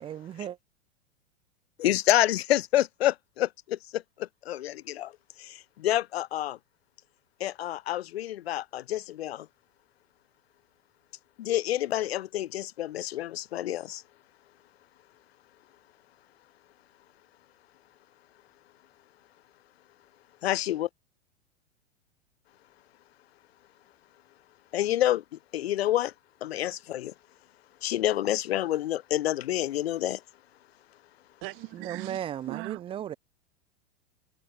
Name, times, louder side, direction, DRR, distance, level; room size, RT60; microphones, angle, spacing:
voice 1, 0.0-0.6 31.7-33.1, right 10 dB, 15° right, 0.5 m, -36 dB
voice 2, 1.8-5.1 5.4-6.6 7.4-9.5 11.4-14.0 20.4-20.9 24.7-25.2 25.5-26.1 26.4-27.1 27.8-30.2, left 13 dB, 60° left, 0.5 m, -28 dB
voice 3, 31.4-32.2 32.5-32.8, right 26 dB, 35° right, 1.5 m, -38 dB
figure-of-eight pair, 95°, 35 cm